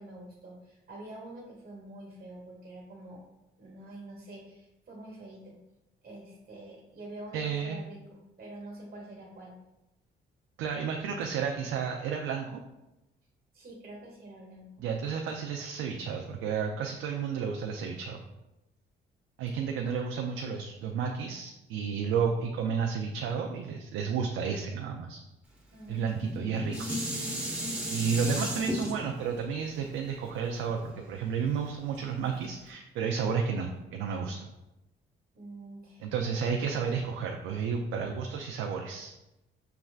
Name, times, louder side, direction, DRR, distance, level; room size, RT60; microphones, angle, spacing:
voice 1, 0.0-3.2 3.6-5.6 6.0-9.5 13.5-14.9 25.7-26.3 35.3-36.1, right 1 dB, 45° right, -3 dB, 1.2 m, -46 dB
voice 2, 7.3-7.8 10.6-12.6 14.8-18.2 19.4-25.2 25.9-26.8 27.9-34.5 36.0-39.1, right 6 dB, 85° right, 2 dB, 0.5 m, -32 dB
Dishes pots and pans, 26.1-31.4 31.9-32.0, equal, 5° right, 1.2 m, -35 dB
5.8 x 3.2 x 2.4 m, 0.95 s
cardioid pair, 90°, 20 cm